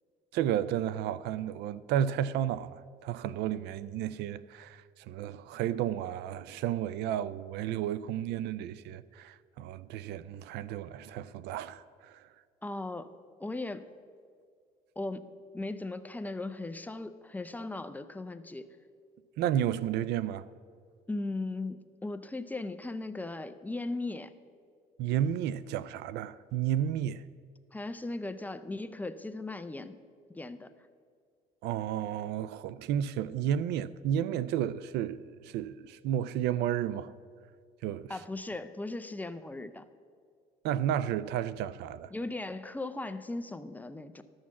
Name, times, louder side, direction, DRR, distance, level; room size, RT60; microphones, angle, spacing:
voice 1, 0.3-12.2 19.4-20.5 25.0-27.2 31.6-37.1 37.8-38.1 40.6-42.1, right 10 dB, 85° right, 0.4 m, -32 dB
voice 2, 12.6-13.1 13.4-13.9 15.0-15.3 15.5-18.7 21.1-24.3 27.7-30.0 30.3-30.7 38.1-39.8 42.1-44.2, left 2 dB, 10° left, 0.5 m, -37 dB
12.5 x 6.3 x 7.2 m
cardioid pair, 110°, 17 cm